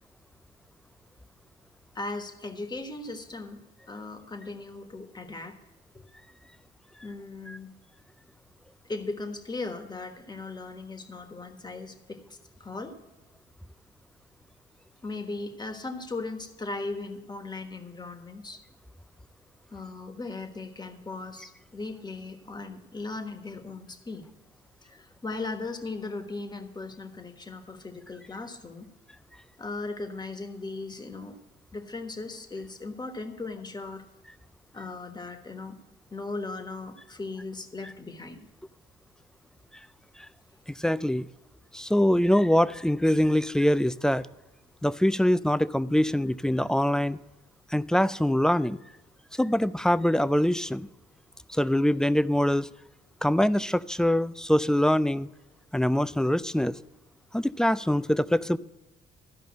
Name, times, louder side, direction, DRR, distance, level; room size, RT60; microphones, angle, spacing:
voice 1, 1.9-3.6 3.9-5.5 5.9-6.1 7.0-7.7 8.9-12.9 15.0-18.6 19.7-24.3 24.8-28.9 29.6-31.4 31.7-34.0 34.7-35.8 36.1-38.4, left 3 dB, 20° left, 6 dB, 1.4 m, -38 dB
voice 2, 40.7-41.3 41.7-44.3 44.8-47.2 47.7-48.8 49.3-50.9 51.5-52.7 53.2-55.3 55.7-56.8 57.3-58.6, left 1 dB, 5° left, 16 dB, 0.3 m, -24 dB
13.5 x 5.3 x 7.4 m, 1.0 s
cardioid pair, 90°, 20 cm